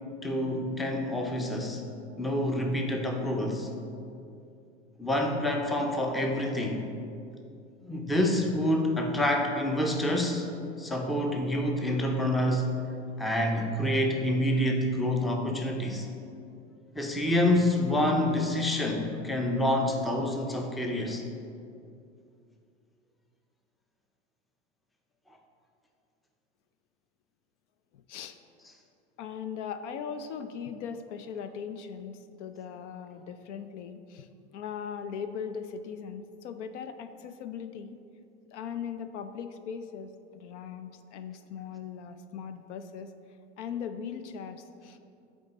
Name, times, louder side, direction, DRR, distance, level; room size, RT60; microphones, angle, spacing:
voice 1, 0.2-1.8 2.2-3.7 5.0-6.8 7.8-12.8 13.2-16.1 16.9-21.2, left 1 dB, ahead, 2 dB, 0.4 m, -27 dB
voice 2, 27.9-28.4 29.2-38.0 38.5-43.1 43.6-45.0, left 7 dB, 70° left, 10 dB, 0.5 m, -39 dB
8.7 x 3.7 x 3.9 m, 2.6 s
hypercardioid pair, 90°, 37 cm